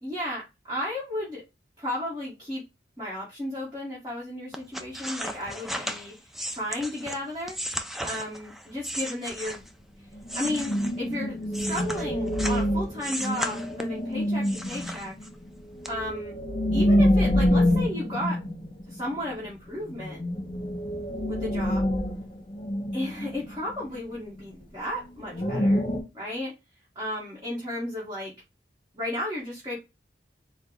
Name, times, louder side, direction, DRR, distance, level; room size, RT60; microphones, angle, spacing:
voice 1, 0.0-1.4 1.8-2.6 3.0-7.6 8.0-9.7 10.3-15.1 15.9-16.3 16.7-18.4 18.9-20.2 21.3-21.9 22.9-25.8 26.1-26.5 27.0-28.3 28.9-29.8, left 1 dB, 20° right, -8 dB, 1.7 m, -34 dB
sound 1, 4.5-9.8 10.2-12.7 13.0-14.0 14.4-15.5 15.8-15.9, equal, ahead, 0.3 m, -35 dB
sound 2, 10.2-19.2 19.4-19.5 19.9-24.0 24.4-24.5 25.3-26.0, equal, 30° left, 1.2 m, -26 dB
4.3 x 2.4 x 3.9 m, 0.25 s
head